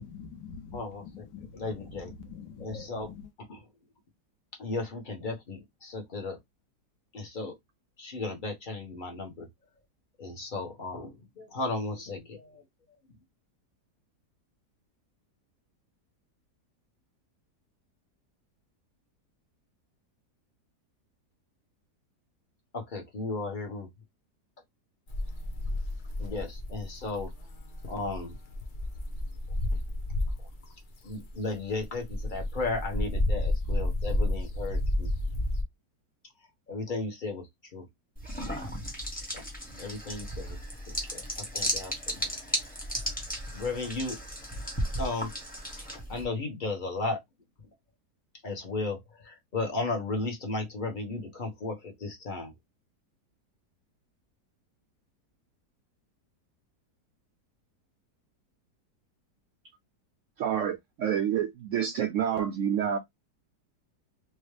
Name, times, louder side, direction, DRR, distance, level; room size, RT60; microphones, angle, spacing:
voice 1, 0.0-1.7 2.0-3.2, left 5 dB, 90° left, 1.5 m, -45 dB
voice 2, 0.7-1.0 1.6-2.1 2.6-3.1 3.5-3.6 4.6-6.4 7.1-7.5 8.0-9.5 10.2-12.4 22.7-23.9 26.2-27.3 27.9-28.3 31.0-32.0 32.3-35.1 36.7-37.4 37.7-37.8 39.8-40.5 41.5-41.9 42.2-42.3 43.5-44.2 45.0-45.3 46.1-47.2 48.4-49.0 49.5-51.7 52.0-52.5, left 3 dB, 35° left, 1.1 m, -34 dB
sound 1, 25.1-30.6 31.0-35.6, left 1 dB, 55° left, 0.5 m, -31 dB
sound 2, 38.2-46.2, equal, 5° left, 1.0 m, -35 dB
voice 3, 60.4-63.0, right 9 dB, 75° right, 0.7 m, -28 dB
3.1 x 3.1 x 3.2 m
omnidirectional pair, 1.8 m